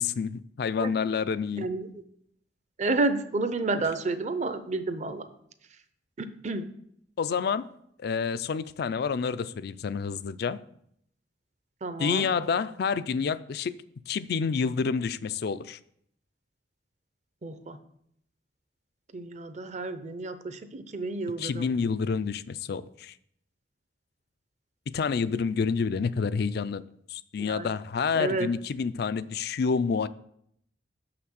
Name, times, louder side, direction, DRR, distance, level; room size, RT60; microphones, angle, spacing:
voice 1, 0.0-1.7 7.2-7.6 8.0-10.6 12.0-13.8 14.1-15.8 21.4-23.1 24.9-26.8 27.1-30.1, left 5 dB, 60° left, 0.4 m, -28 dB
voice 2, 1.6-1.9 2.8-5.3 6.2-6.7 11.8-12.3 17.4-17.8 19.1-21.7 27.4-27.7 28.1-28.5, right 3 dB, 40° right, 0.6 m, -30 dB
6.5 x 5.9 x 6.3 m
head